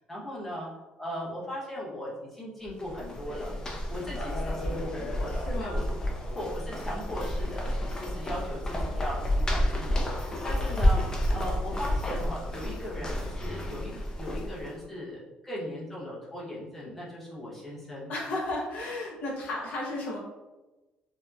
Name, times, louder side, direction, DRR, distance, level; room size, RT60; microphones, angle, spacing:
voice 1, 0.1-0.7 1.0-3.5 3.9-5.8 6.3-18.1, equal, 5° left, -7 dB, 0.8 m, -38 dB
sound 1, 2.7-14.8, left 1 dB, 20° left, 0.4 m, -30 dB
voice 2, 5.3-5.8 18.1-20.2, left 2 dB, 60° left, -2 dB, 0.6 m, -33 dB
2.8 x 2.1 x 2.3 m, 1.1 s
cardioid pair, 125°, 3 cm